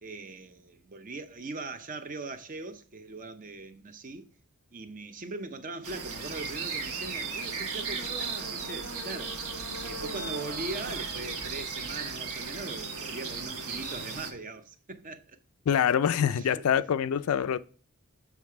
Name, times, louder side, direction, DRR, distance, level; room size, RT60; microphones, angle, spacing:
voice 1, 0.0-4.3 4.7-9.5 9.8-15.4 16.2-16.6, right 3 dB, 40° right, 0.6 m, -41 dB
sound 1, 5.8-14.3, right 4 dB, 80° right, 1.2 m, -36 dB
voice 2, 15.7-17.6, left 8 dB, 70° left, 0.3 m, -25 dB
7.2 x 3.3 x 4.6 m
head